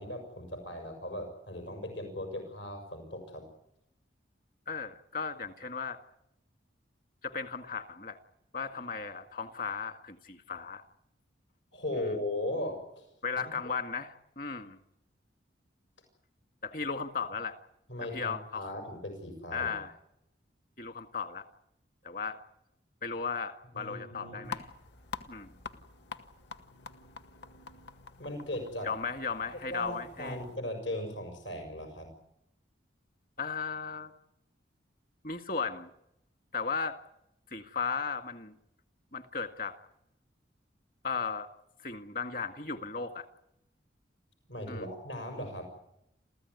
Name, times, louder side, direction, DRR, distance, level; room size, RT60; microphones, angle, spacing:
voice 1, 0.0-3.4 11.7-13.0 17.9-19.8 23.7-24.5 28.2-28.9 29.7-32.1 44.5-45.8, left 1 dB, 80° left, 5 dB, 6.8 m, -38 dB
voice 2, 4.7-6.0 7.2-8.2 8.5-10.8 13.2-14.8 16.6-17.6 18.1-18.6 19.5-19.9 20.8-21.4 22.0-22.4 23.0-24.7 25.3-25.5 28.8-30.4 33.4-34.1 35.2-35.9 36.5-37.0 37.5-38.5 39.1-39.8 41.0-41.5 41.8-43.3 44.7-44.9, left 5 dB, 45° left, 7 dB, 1.9 m, -36 dB
sound 1, 24.4-30.6, left 5 dB, 65° left, 1.9 m, -46 dB
29.0 x 15.0 x 9.6 m, 0.79 s
head